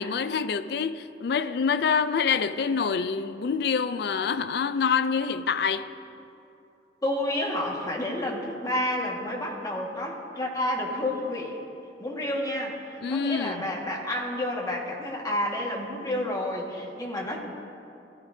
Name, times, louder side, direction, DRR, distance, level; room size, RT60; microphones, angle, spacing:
voice 1, 0.0-5.9 13.0-13.7, left 6 dB, 65° left, 0.4 m, -26 dB
voice 2, 7.0-11.6 12.0-17.4, left 1 dB, 20° left, 1.7 m, -30 dB
18.5 x 13.0 x 2.7 m
head